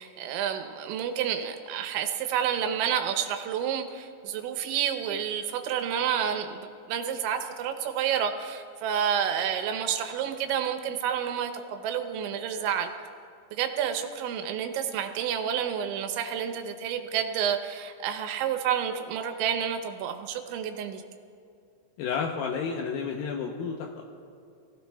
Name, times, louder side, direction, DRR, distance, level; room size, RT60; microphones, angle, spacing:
voice 1, 0.0-12.9 13.5-21.0, right 8 dB, 90° right, 6 dB, 3.3 m, -29 dB
voice 2, 22.0-24.0, left 6 dB, 80° left, 1 dB, 2.1 m, -31 dB
24.0 x 16.0 x 2.3 m, 2.4 s
omnidirectional pair, 5.2 m